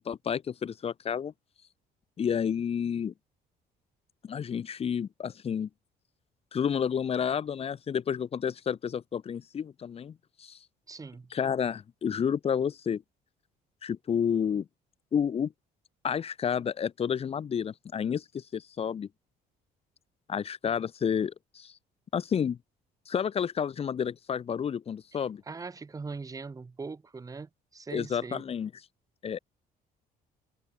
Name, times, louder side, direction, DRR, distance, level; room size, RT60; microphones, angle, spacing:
voice 1, 0.0-1.3 2.2-3.1 4.2-5.7 6.5-10.6 11.3-13.0 13.8-14.7 15.1-15.5 16.0-19.1 20.3-21.7 22.1-22.6 23.1-25.4 27.9-28.7 29.2-29.4, left 7 dB, 35° left, 0.8 m, -30 dB
voice 2, 10.9-11.3 25.1-28.4, right 4 dB, 20° right, 1.4 m, -41 dB
cardioid pair, 110°, 17 cm